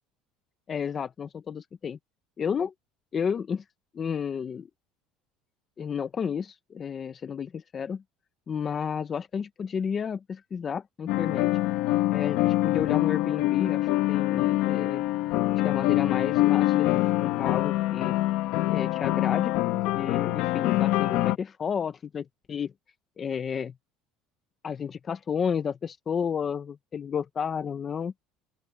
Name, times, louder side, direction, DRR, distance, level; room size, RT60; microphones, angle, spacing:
voice 1, 0.7-2.0 2.4-2.7 3.1-3.6 3.9-4.7 5.8-8.0 8.5-11.5 12.1-15.0 15.6-18.2 18.6-22.7 23.2-23.7 24.6-28.1, left 7 dB, 20° left, 0.5 m, -32 dB
sound 1, 11.1-21.4, left 16 dB, 55° left, 1.2 m, -25 dB
open air
cardioid pair, 175°, 0 cm